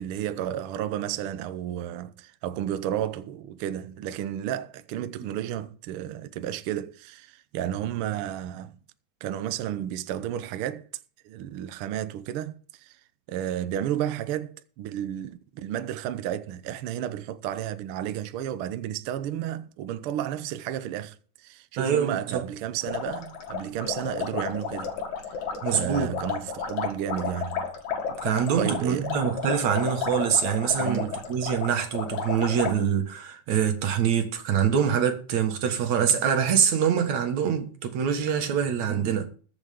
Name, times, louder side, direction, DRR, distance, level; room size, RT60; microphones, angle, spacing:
voice 1, 0.0-8.8 9.2-10.9 11.2-13.0 13.3-24.9 25.7-27.7 28.6-29.1 30.8-31.2, right 11 dB, 90° right, 1.2 m, -32 dB
voice 2, 21.8-22.4 25.6-26.1 28.2-39.3, right 8 dB, 65° right, 2.8 m, -25 dB
sound 1, 22.8-32.7, left 6 dB, 70° left, 3.4 m, -32 dB
21.0 x 7.2 x 3.6 m
omnidirectional pair, 3.5 m